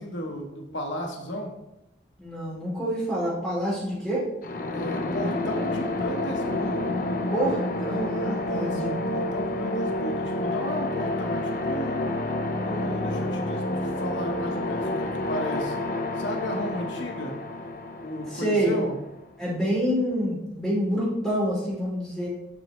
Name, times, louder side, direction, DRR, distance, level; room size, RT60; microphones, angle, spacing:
voice 1, 0.0-1.5 4.7-7.0 8.5-12.0 12.6-15.8 16.1-17.4 18.0-18.9, equal, 90° left, 2 dB, 1.1 m, -34 dB
voice 2, 2.2-4.3 7.3-9.1 18.3-18.8 19.4-22.3, equal, ahead, -8 dB, 2.8 m, -27 dB
sound 1, 4.4-19.1, left 2 dB, 45° left, 0.5 m, -29 dB
7.4 x 6.4 x 3.0 m, 0.89 s
head